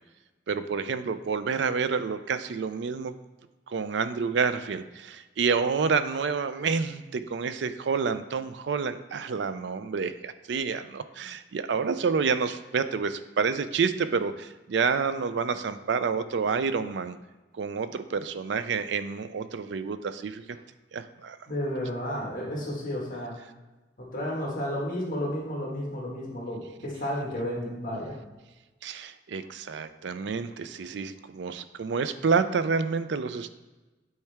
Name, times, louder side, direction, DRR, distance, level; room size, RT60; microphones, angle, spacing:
voice 1, 0.5-3.1 3.7-17.2 17.6-20.4 20.9-21.4 28.8-33.5, right 5 dB, 70° right, 12 dB, 0.4 m, -28 dB
voice 2, 21.5-23.3 24.1-28.2, equal, 45° left, -4 dB, 1.8 m, -32 dB
8.6 x 4.5 x 3.5 m, 1.1 s
head